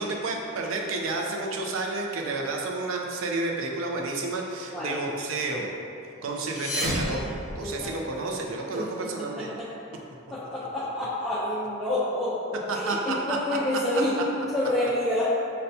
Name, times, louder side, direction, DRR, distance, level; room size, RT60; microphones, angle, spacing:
voice 1, 0.0-5.7 6.2-9.5 12.7-13.4 13.7-14.0, right 3 dB, 75° right, 0 dB, 0.4 m, -30 dB
sound 1, 6.3-8.2, left 1 dB, 35° left, 0.7 m, -32 dB
voice 2, 7.6-8.0 8.7-9.7 10.3-15.4, left 1 dB, ahead, -11 dB, 0.4 m, -28 dB
5.3 x 2.2 x 2.7 m, 2.6 s
head